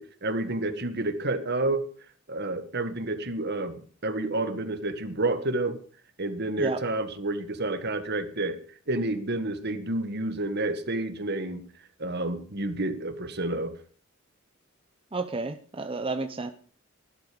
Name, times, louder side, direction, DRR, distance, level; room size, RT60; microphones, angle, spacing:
voice 1, 0.0-1.9 2.3-5.8 6.2-8.6 8.9-11.6 12.0-13.7, right 2 dB, 55° right, 10 dB, 1.9 m, -29 dB
voice 2, 15.1-16.5, right 3 dB, 25° right, 8 dB, 0.8 m, -31 dB
17.0 x 12.0 x 5.3 m, 0.41 s
head